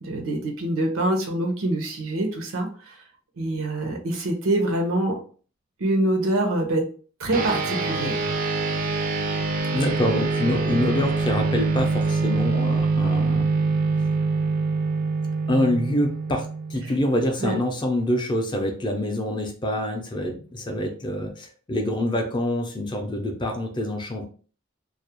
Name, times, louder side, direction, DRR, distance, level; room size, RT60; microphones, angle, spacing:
voice 1, 0.0-2.7 3.4-5.1 5.8-6.8 7.2-8.2 17.4-17.6, right 1 dB, 90° right, 3 dB, 0.7 m, -25 dB
sound 1, 7.3-17.1, right 4 dB, 45° right, 0.4 m, -24 dB
voice 2, 9.7-13.5 15.5-16.5 16.7-24.3, left 1 dB, 25° left, 3 dB, 0.4 m, -26 dB
2.3 x 2.0 x 2.8 m, 0.41 s
head